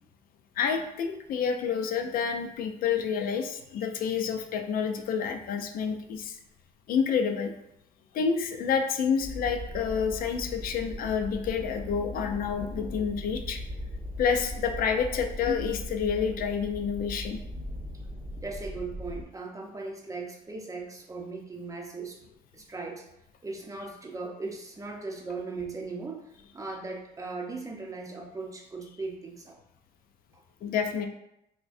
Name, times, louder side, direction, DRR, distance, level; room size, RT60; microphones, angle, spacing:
voice 1, 0.6-6.4 6.9-7.5 8.1-13.6 14.2-17.4 30.6-31.1, left 6 dB, 60° left, 5 dB, 0.4 m, -29 dB
sound 1, 9.2-19.2, left 1 dB, 5° left, 0.9 m, -39 dB
voice 2, 18.4-22.2 22.5-23.0 23.4-29.6, right 3 dB, 20° right, 0 dB, 0.6 m, -38 dB
5.8 x 2.1 x 2.6 m, 0.83 s
cardioid pair, 110°, 17 cm